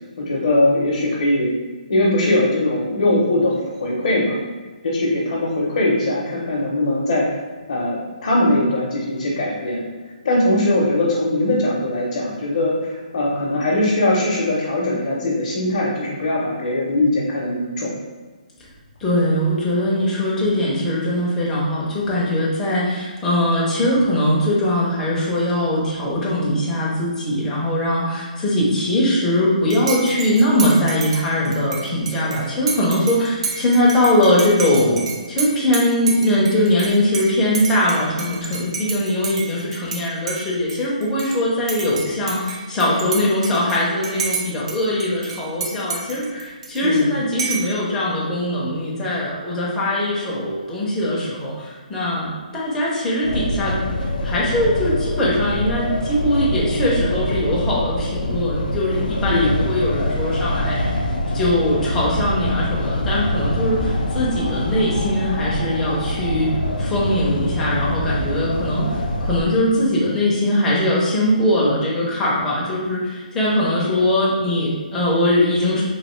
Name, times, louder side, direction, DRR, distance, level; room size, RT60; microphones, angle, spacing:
voice 1, 0.2-1.6 1.9-4.4 4.8-7.3 7.7-9.8 10.2-17.9 46.8-47.1 59.3-59.5, left 1 dB, 50° left, -4 dB, 0.7 m, -20 dB
voice 2, 19.0-53.8 54.2-61.0 61.3-75.8, left 1 dB, 5° left, -7 dB, 0.5 m, -21 dB
Dishes pots and pans / Cutlery silverware / Chink clink, 29.7-40.0 40.3-41.4 41.7-44.7 45.0-47.0 47.4-47.8, right 5 dB, 45° right, 0.6 m, -30 dB
sound 1, 53.2-69.4, left 1 dB, 90° left, 0.5 m, -24 dB
3.1 x 2.6 x 3.0 m, 1.4 s
hypercardioid pair, 175°, 5 cm